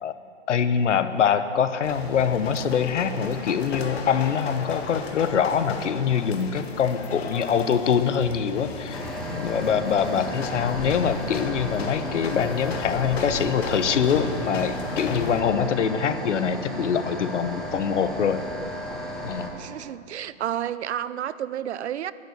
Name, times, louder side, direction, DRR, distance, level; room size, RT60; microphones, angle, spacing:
voice 1, 0.5-9.0 9.3-18.4 19.2-19.5, left 7 dB, 85° left, 11 dB, 1.0 m, -24 dB
sound 1, 1.8-15.4, left 4 dB, 60° left, 1.6 m, -35 dB
sound 2, 8.9-19.5, equal, ahead, 0.7 m, -34 dB
voice 2, 19.5-22.1, right 10 dB, 70° right, 16 dB, 0.7 m, -31 dB
11.0 x 9.6 x 9.3 m, 2.5 s
hypercardioid pair, 165°, 35 cm